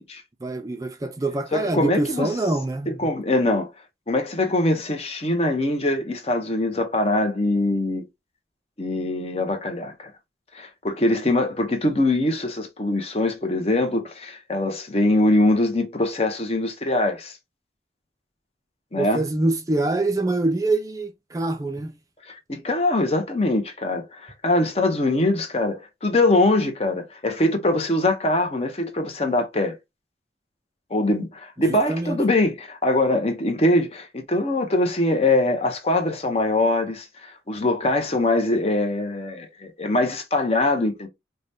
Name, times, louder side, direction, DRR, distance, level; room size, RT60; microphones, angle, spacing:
voice 1, 0.4-3.1 19.0-21.9 31.7-32.2, right 2 dB, 20° right, 0.4 m, -25 dB
voice 2, 1.5-2.3 3.0-3.7 4.1-8.0 8.8-10.1 10.5-17.3 18.9-19.2 22.5-29.7 30.9-41.1, left 2 dB, 30° left, 0.7 m, -23 dB
4.9 x 2.2 x 2.6 m
head